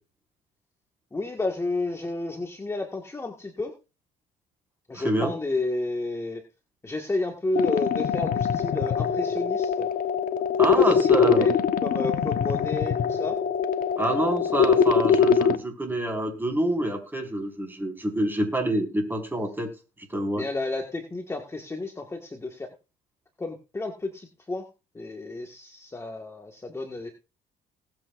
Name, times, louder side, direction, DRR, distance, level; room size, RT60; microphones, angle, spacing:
voice 1, 1.1-3.7 4.9-6.4 6.8-9.9 10.6-10.9 11.2-11.5 11.8-13.4 20.4-22.7 23.4-24.7 24.9-27.1, left 2 dB, 15° left, 2 dB, 1.8 m, -31 dB
voice 2, 4.9-5.3 10.6-11.5 14.0-19.7 20.0-20.4, right 1 dB, 10° right, 3 dB, 5.1 m, -27 dB
sound 1, 7.6-15.6, left 6 dB, 55° left, 1.3 m, -23 dB
20.0 x 8.3 x 2.6 m, 0.31 s
cardioid pair, 110°, 17 cm